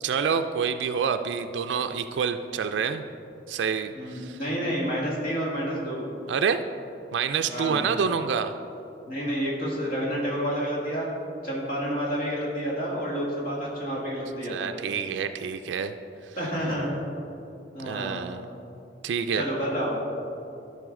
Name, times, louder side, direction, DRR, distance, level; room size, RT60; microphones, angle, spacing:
voice 1, 0.0-3.0 3.5-4.4 6.3-6.6 7.1-8.5 14.5-15.9 16.3-16.4 17.8-18.5 19.0-19.4, right 6 dB, 85° right, 8 dB, 0.4 m, -27 dB
voice 2, 4.0-6.1 7.5-7.9 9.1-11.1 11.4-14.7 16.4-16.9 17.7-18.3 19.3-20.0, equal, 50° left, -4 dB, 2.0 m, -29 dB
12.0 x 5.5 x 3.7 m, 2.8 s
head